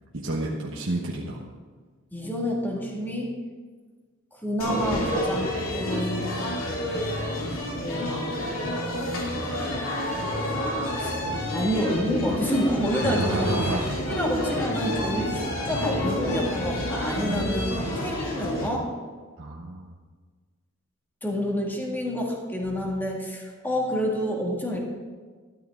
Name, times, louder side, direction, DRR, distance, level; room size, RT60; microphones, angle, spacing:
voice 1, 0.1-1.4 12.9-13.9 17.2-17.9 19.4-19.9, right 1 dB, 65° right, -3 dB, 1.3 m, -30 dB
voice 2, 2.1-3.3 4.3-6.3 7.8-8.7 11.0-11.2 11.5-13.5 14.0-18.9 21.2-24.8, equal, 10° left, -1 dB, 2.1 m, -28 dB
sound 1, 4.6-18.7, left 1 dB, 75° left, 2.8 m, -29 dB
13.5 x 12.5 x 3.8 m, 1.5 s
head